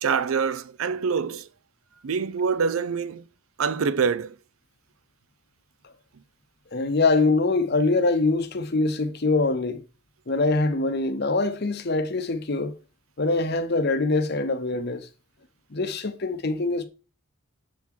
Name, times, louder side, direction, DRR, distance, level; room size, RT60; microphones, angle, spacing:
voice 1, 0.0-1.5 2.0-3.2 3.6-4.4, right 6 dB, 75° right, 0.5 m, -25 dB
voice 2, 6.7-9.8 10.3-12.7 13.2-15.1 15.7-16.9, left 3 dB, 50° left, 0.8 m, -24 dB
7.1 x 3.8 x 4.5 m
head